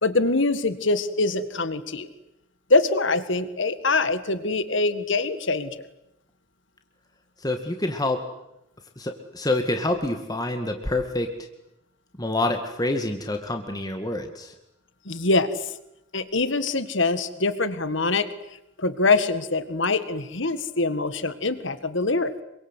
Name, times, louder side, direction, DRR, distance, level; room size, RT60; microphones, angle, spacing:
voice 1, 0.0-2.1 2.7-5.8 15.1-15.7 16.1-18.3 18.8-22.4, left 3 dB, 65° left, 12 dB, 1.8 m, -24 dB
voice 2, 7.4-8.2 9.0-11.5 12.2-14.5, left 2 dB, 20° left, 5 dB, 2.0 m, -27 dB
27.0 x 24.0 x 8.3 m, 0.84 s
head